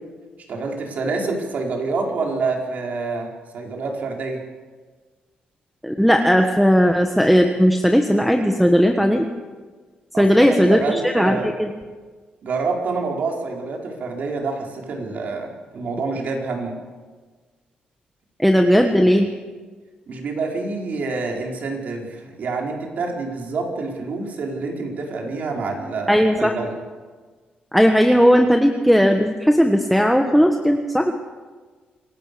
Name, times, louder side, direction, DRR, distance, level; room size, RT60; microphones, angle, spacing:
voice 1, 0.5-4.4 10.1-11.5 12.4-16.8 20.1-26.8, right 3 dB, 60° right, 1 dB, 4.9 m, -27 dB
voice 2, 5.8-9.3 10.2-11.7 18.4-19.3 26.1-26.5 27.7-31.1, equal, ahead, 4 dB, 1.4 m, -16 dB
27.0 x 17.5 x 6.9 m, 1.4 s
cardioid pair, 115°, 3 cm